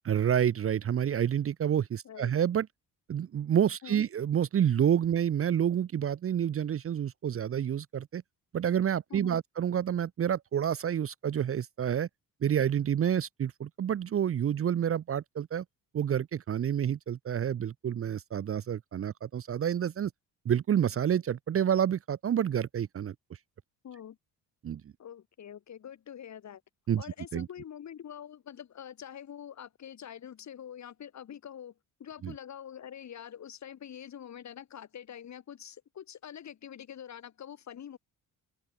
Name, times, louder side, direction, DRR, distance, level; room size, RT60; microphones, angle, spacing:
voice 1, 0.1-2.7 3.1-8.2 8.5-12.1 12.4-15.6 15.9-20.1 20.4-23.1 24.6-24.8 26.9-27.0 27.3-27.5 32.2-32.3, right 9 dB, 40° right, 0.9 m, -28 dB
voice 2, 23.8-24.2 25.0-26.6 27.0-31.7 32.0-38.0, left 9 dB, 50° left, 7.8 m, -45 dB
open air
cardioid pair, 150°, 35 cm